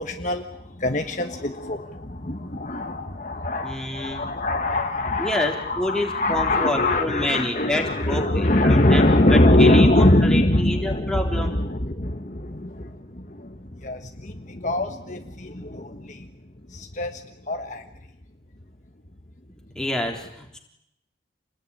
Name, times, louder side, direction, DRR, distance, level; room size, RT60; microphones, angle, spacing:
voice 1, 0.0-16.3 16.7-17.2 17.5-17.8, left 1 dB, 40° left, 5 dB, 1.4 m, -23 dB
voice 2, 3.6-4.3 5.2-11.6 19.8-20.6, left 1 dB, 5° left, 0 dB, 3.7 m, -28 dB
28.0 x 20.0 x 9.8 m, 0.82 s
head